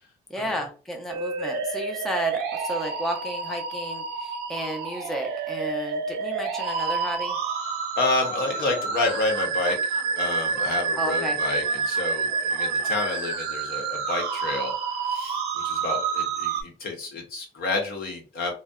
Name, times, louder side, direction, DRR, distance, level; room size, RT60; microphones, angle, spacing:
voice 1, 0.3-7.4 10.9-11.4, equal, ahead, 3 dB, 0.4 m, -32 dB
sound 1, 1.1-16.6, right 5 dB, 75° right, 0.6 m, -29 dB
voice 2, 8.0-14.7 15.0-15.4 15.6-18.5, left 2 dB, 65° left, 2 dB, 0.9 m, -29 dB
sound 2, 8.3-13.4, left 2 dB, 40° left, 0.7 m, -42 dB
2.6 x 2.0 x 2.3 m, 0.37 s
cardioid pair, 110°, 17 cm